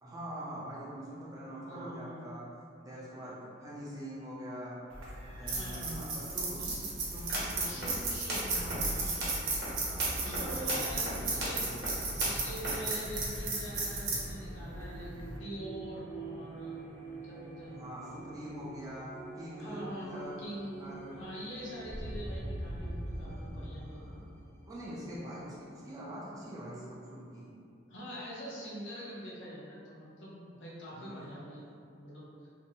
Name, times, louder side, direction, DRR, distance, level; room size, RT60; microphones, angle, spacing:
voice 1, 0.0-2.5 2.8-4.8 5.3-6.6 7.1-7.8 9.7-11.7 17.7-21.2 23.2-24.2 24.6-27.5 30.9-31.3, equal, 20° right, -7 dB, 0.4 m, -44 dB
voice 2, 1.7-2.2 5.4-6.1 6.6-6.9 7.6-9.3 10.2-11.6 12.2-16.9 17.2-17.8 19.6-20.7 21.1-24.1 27.9-31.7 32.0-32.3, equal, 65° left, -7 dB, 0.6 m, -44 dB
sound 1, 4.9-15.4, right 3 dB, 85° right, 0.6 m, -35 dB
sound 2, 7.1-13.4, equal, 55° right, 0.8 m, -40 dB
sound 3, 12.7-26.1, right 1 dB, 90° left, 1.1 m, -44 dB
2.6 x 2.0 x 2.6 m, 2.5 s
head